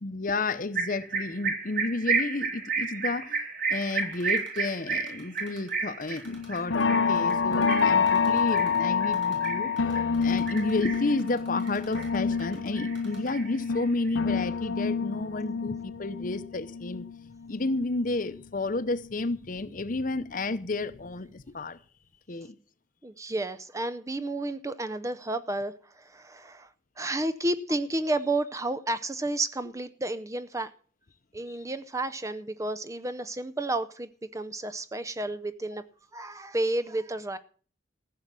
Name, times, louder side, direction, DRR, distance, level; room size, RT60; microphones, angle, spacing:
voice 1, 0.0-3.4 3.7-17.0 17.5-21.8 22.3-22.6, left 2 dB, 45° left, 0.8 m, -31 dB
sound 1, 0.8-10.1 10.5-11.2 11.6-12.5 12.7-14.1, right 5 dB, 45° right, 3.2 m, -32 dB
Typing, 3.7-5.7 6.0-6.8 7.2-8.8 9.1-9.5 9.8-12.7 12.9-13.3, right 4 dB, 65° right, 5.3 m, -52 dB
sound 2, 6.2-18.4 18.8-20.4 20.7-21.1 21.4-21.5, left 5 dB, 75° left, 0.8 m, -28 dB
voice 2, 23.0-26.7 27.0-30.7 31.3-35.8 36.1-37.4, right 2 dB, 15° right, 0.5 m, -31 dB
15.0 x 6.7 x 7.4 m
head